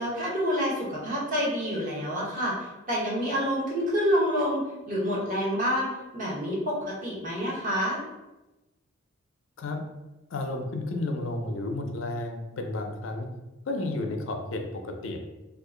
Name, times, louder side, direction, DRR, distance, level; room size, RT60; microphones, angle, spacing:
voice 1, 0.0-8.0, equal, 40° right, -6 dB, 1.0 m, -28 dB
voice 2, 10.3-13.3 13.7-15.2, left 2 dB, 65° left, 4 dB, 0.4 m, -32 dB
2.8 x 2.4 x 3.7 m, 1.0 s
head